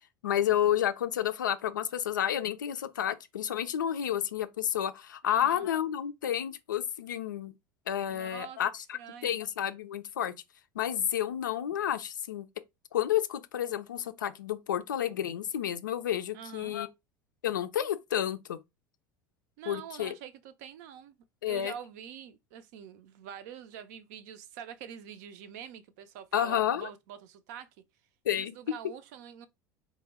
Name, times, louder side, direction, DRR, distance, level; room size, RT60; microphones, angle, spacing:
voice 1, 0.2-7.5 7.9-10.3 10.8-12.5 12.9-16.9 17.4-18.6 19.7-20.1 21.4-21.7 26.3-26.9 28.3-28.5, left 10 dB, 70° left, 0.4 m, -30 dB
voice 2, 5.2-5.7 8.1-8.6 8.9-9.4 16.3-16.7 19.6-21.2 21.4-27.7 28.3-29.5, right 9 dB, 55° right, 0.5 m, -45 dB
3.4 x 2.1 x 3.4 m
figure-of-eight pair, 75°, 11 cm